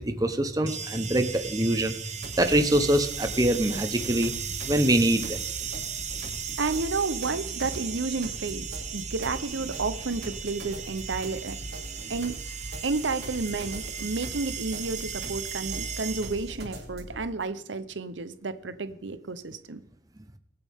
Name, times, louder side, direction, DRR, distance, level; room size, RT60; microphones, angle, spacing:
voice 1, 0.0-1.9 2.4-4.3 4.7-5.4, right 1 dB, 20° right, 7 dB, 1.0 m, -24 dB
sound 1, 0.7-16.6, right 8 dB, 40° right, 1.3 m, -37 dB
sound 2, 2.2-17.2, equal, 60° right, 4.3 m, -41 dB
voice 2, 6.6-8.6 8.9-11.6 12.1-12.6 12.8-19.8, right 3 dB, 90° right, 12 dB, 0.9 m, -31 dB
23.0 x 9.0 x 3.6 m, 0.74 s
head